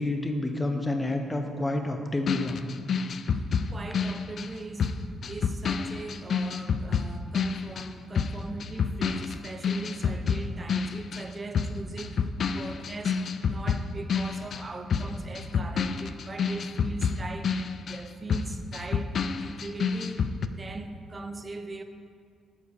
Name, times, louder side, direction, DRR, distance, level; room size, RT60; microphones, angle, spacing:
voice 1, 0.0-2.6, left 2 dB, 15° left, 0.9 m, -29 dB
sound 1, 2.3-11.3 11.5-20.5, left 5 dB, 55° left, 0.3 m, -29 dB
voice 2, 3.7-20.3 20.6-21.8, right 3 dB, 30° right, 0.6 m, -40 dB
7.2 x 5.0 x 6.6 m
cardioid pair, 90°, 0 cm